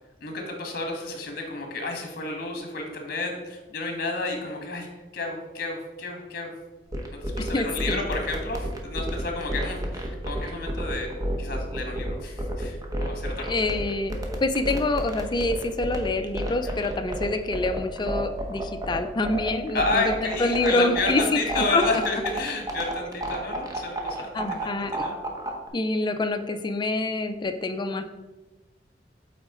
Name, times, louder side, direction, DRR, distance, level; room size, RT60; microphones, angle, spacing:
voice 1, 0.2-4.9 5.1-6.5 7.1-11.1 11.4-13.7 16.6-16.8 19.7-25.2, left 2 dB, 55° left, 2 dB, 1.5 m, -31 dB
sound 1, 6.9-25.7, right 1 dB, 20° right, 0.9 m, -30 dB
voice 2, 7.4-8.0 13.5-21.8 24.3-25.1 25.7-28.1, left 2 dB, 25° left, 8 dB, 0.4 m, -26 dB
8.4 x 4.1 x 3.8 m, 1.1 s
head